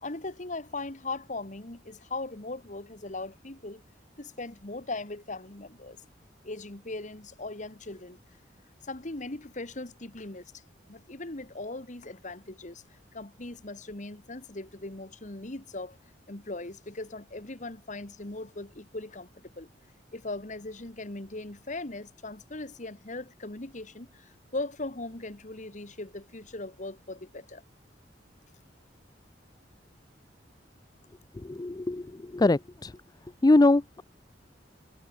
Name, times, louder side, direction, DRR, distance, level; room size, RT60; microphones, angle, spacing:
voice 1, 0.0-3.8 4.2-6.0 6.4-8.2 8.8-10.5 10.9-12.8 13.1-16.0 16.3-19.7 20.1-27.6, left 2 dB, 45° left, 1.9 m, -39 dB
voice 2, 31.3-33.0 33.4-34.0, left 2 dB, 20° left, 0.4 m, -23 dB
head